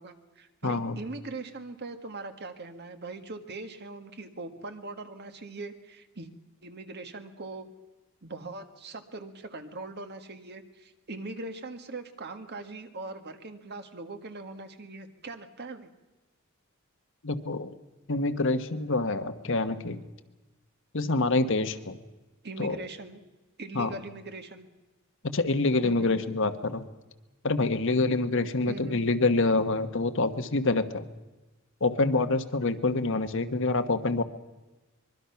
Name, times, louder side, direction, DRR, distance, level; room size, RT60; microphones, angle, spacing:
voice 1, 0.0-6.3 6.6-7.7 8.2-15.9 22.4-23.2 23.6-24.7 25.8-26.1 28.7-29.0, right 3 dB, 55° right, 7 dB, 1.7 m, -41 dB
voice 2, 0.6-0.9 17.2-17.7 18.1-20.0 20.9-22.0 22.6-22.8 23.7-23.9 25.2-26.9 27.4-31.0 31.8-34.2, left 3 dB, 65° left, 9 dB, 1.3 m, -26 dB
24.0 x 22.5 x 5.8 m, 1.1 s
head